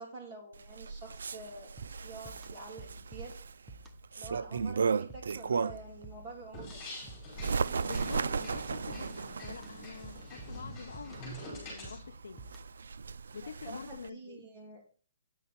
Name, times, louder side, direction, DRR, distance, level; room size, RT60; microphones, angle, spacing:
voice 1, 0.0-1.8 2.0-3.3 4.2-6.8 13.4-14.8, right 3 dB, 25° right, 3.0 m, -47 dB
Bird, 0.5-6.0 6.4-14.1, right 5 dB, 80° right, 0.4 m, -36 dB
sound 1, 1.8-12.9, right 1 dB, ahead, 0.7 m, -52 dB
sound 2, 6.5-12.0, equal, 15° left, 5.0 m, -45 dB
voice 2, 7.8-12.4 13.3-14.4, left 6 dB, 75° left, 0.6 m, -46 dB
9.6 x 7.3 x 4.2 m
hypercardioid pair, 175°, 0 cm